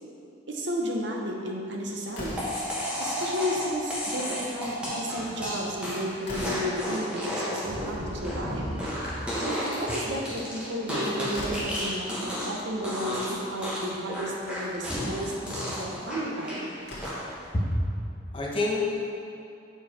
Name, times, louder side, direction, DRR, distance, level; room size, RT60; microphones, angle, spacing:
voice 1, 0.5-2.4 3.0-8.7 9.4-16.7, equal, 70° right, 0 dB, 0.9 m, -33 dB
Slam, 2.1-2.7 4.0-4.3 4.7-4.8 5.0-5.1 5.7-6.8 8.6-9.3 10.9-11.0 11.3-11.8 12.9-13.0 13.4-13.5 14.3-14.6 16.3-16.4 16.8-17.4, left 1 dB, 65° left, 1.5 m, -40 dB
sound 1, 2.4-12.6 12.8-13.3 13.6-16.6 17.0-17.5, equal, 5° right, 1.2 m, -32 dB
voice 2, 17.5-18.8, left 1 dB, 30° left, -3 dB, 0.9 m, -28 dB
6.9 x 4.7 x 4.2 m, 2.6 s
head